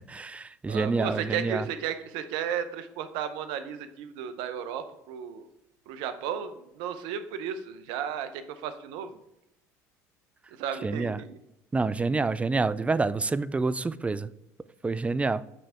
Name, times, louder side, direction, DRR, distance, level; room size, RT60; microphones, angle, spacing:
voice 1, 0.1-1.6 10.8-11.2 11.7-14.3 14.8-15.4, right 3 dB, 15° right, 0.3 m, -27 dB
voice 2, 0.7-5.5 5.9-9.2 10.5-11.4, right 8 dB, 70° right, 0.7 m, -34 dB
8.6 x 3.3 x 3.6 m
hypercardioid pair, 75°, 9 cm